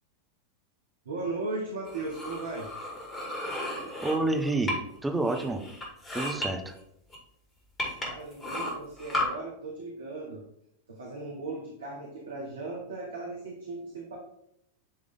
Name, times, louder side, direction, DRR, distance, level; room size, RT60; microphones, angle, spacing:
voice 1, 1.0-2.7 8.0-10.4 10.9-14.2, right 3 dB, 70° right, -2 dB, 1.4 m, -37 dB
sound 1, 1.8-5.0 5.3-6.5 7.1-7.2 7.8-9.3, left 1 dB, 20° left, 2.4 m, -34 dB
voice 2, 3.6-4.7 5.0-5.6 6.1-6.7, right 2 dB, 5° right, 3 dB, 0.9 m, -29 dB
10.5 x 3.4 x 3.7 m, 0.77 s
figure-of-eight pair, 90°, 0 cm